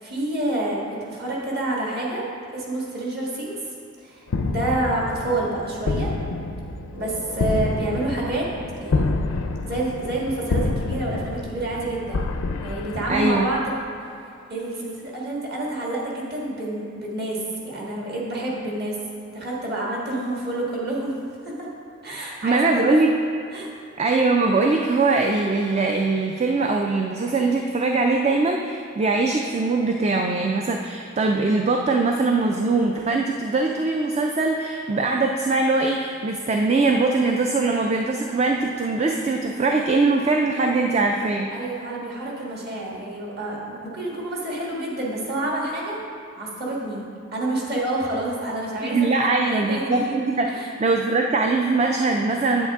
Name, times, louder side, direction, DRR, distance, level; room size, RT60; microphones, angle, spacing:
voice 1, 0.0-2.3 2.5-3.7 4.0-6.1 6.9-8.5 8.8-9.1 9.6-12.3 12.6-13.7 14.5-19.0 19.3-21.2 21.4-21.7 22.0-23.0 23.5-23.7 41.5-46.0 46.3-47.1 47.3-50.1 50.5-50.7, right 2 dB, 50° right, -4 dB, 1.6 m, -28 dB
sound 1, 4.3-13.8, left 3 dB, 85° left, 0.5 m, -28 dB
voice 2, 13.1-13.5 22.4-23.1 24.0-41.5 48.8-52.7, right 3 dB, 30° right, 2 dB, 0.3 m, -22 dB
8.2 x 8.1 x 3.5 m, 2.4 s
head